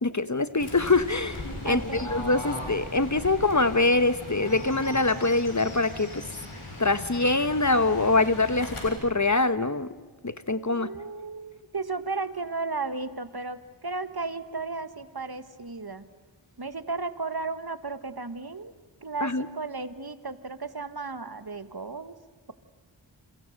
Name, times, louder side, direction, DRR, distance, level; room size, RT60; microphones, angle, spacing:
voice 1, 0.0-6.2 6.8-9.9 10.2-10.9 19.2-19.5, left 3 dB, 35° left, 13 dB, 1.1 m, -24 dB
Fowl / Bird, 0.6-8.9, left 1 dB, 90° left, 7.0 m, -38 dB
voice 2, 1.6-2.0 10.6-16.1 16.6-18.7 19.0-22.2, right 3 dB, 50° right, 11 dB, 1.5 m, -34 dB
30.0 x 29.0 x 6.5 m, 1.3 s
wide cardioid pair, 45°, 48 cm